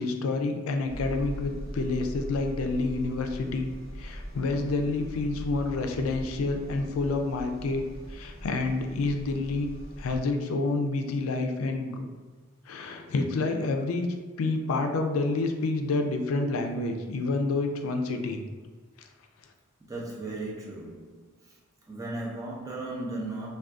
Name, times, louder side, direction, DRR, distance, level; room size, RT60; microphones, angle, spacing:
voice 1, 0.0-3.7 4.0-7.8 8.1-9.7 10.0-12.1 12.7-14.1 14.4-18.4, left 3 dB, 80° left, 0.4 m, -28 dB
sound 1, 0.9-10.2, equal, 15° left, 0.9 m, -40 dB
voice 2, 19.9-21.6 21.9-23.6, right 2 dB, 15° right, 0.5 m, -36 dB
2.4 x 2.3 x 3.5 m
head